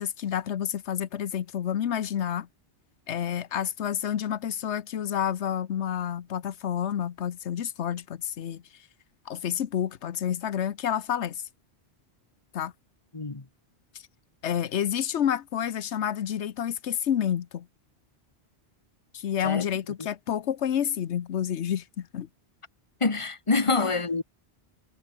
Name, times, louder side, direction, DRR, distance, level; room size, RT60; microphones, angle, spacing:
voice 1, 0.0-2.5 3.1-8.6 9.3-11.4 12.5-12.7 14.4-17.7 19.1-22.3 23.8-23.9, left 9 dB, 90° left, 1.2 m, -29 dB
voice 2, 13.1-13.4 19.4-19.7 23.0-24.2, left 3 dB, 30° left, 1.6 m, -26 dB
omnidirectional pair, 1.1 m